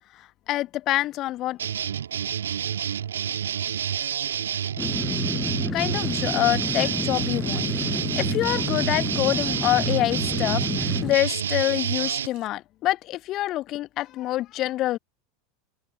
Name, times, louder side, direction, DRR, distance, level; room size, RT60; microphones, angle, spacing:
voice 1, 0.5-1.6 5.7-7.7 8.2-15.0, left 15 dB, 40° left, 1.5 m, -26 dB
sound 1, 1.6-12.3, right 9 dB, 70° right, 1.9 m, -28 dB
sound 2, 4.8-11.2, left 3 dB, 15° left, 0.4 m, -30 dB
Water tap faucet / Sink (filling or washing), 6.0-12.5, right 28 dB, 50° right, 7.3 m, -56 dB
figure-of-eight pair, 80°, 0 cm